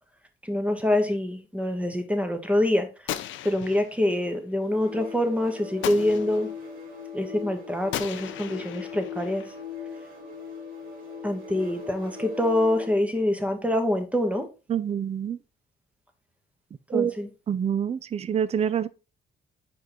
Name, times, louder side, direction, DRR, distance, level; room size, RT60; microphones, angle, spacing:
voice 1, 0.4-6.5 7.1-9.4 11.2-14.5 16.9-17.3, left 1 dB, 5° right, 1.3 m, -25 dB
Gunshot gunfire, 3.1-4.2 5.8-6.6 7.9-9.6, left 12 dB, 75° left, 0.5 m, -36 dB
sound 1, 4.6-13.0, left 6 dB, 85° right, 2.9 m, -39 dB
voice 2, 14.7-15.4 16.9-17.1 17.5-18.9, right 8 dB, 30° right, 0.4 m, -26 dB
5.2 x 4.5 x 3.9 m
cardioid pair, 90°, 20 cm